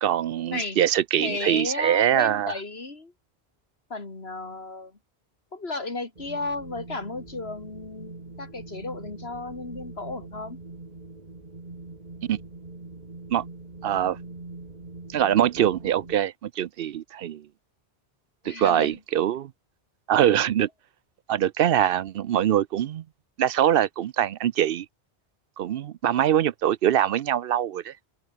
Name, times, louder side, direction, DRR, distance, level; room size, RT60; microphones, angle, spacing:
voice 1, 0.0-2.5 12.3-12.4 13.3-13.4 13.8-14.2 15.1-17.5 18.4-19.5 20.1-20.7 21.3-23.0 23.4-24.9 25.6-27.9, right 10 dB, 65° right, 0.7 m, -23 dB
voice 2, 1.2-3.1 3.9-5.0 5.5-10.6 18.4-19.0, left 3 dB, 75° left, 3.2 m, -34 dB
Wind, 6.2-16.2, right 2 dB, 40° right, 2.4 m, -43 dB
omnidirectional pair, 1.1 m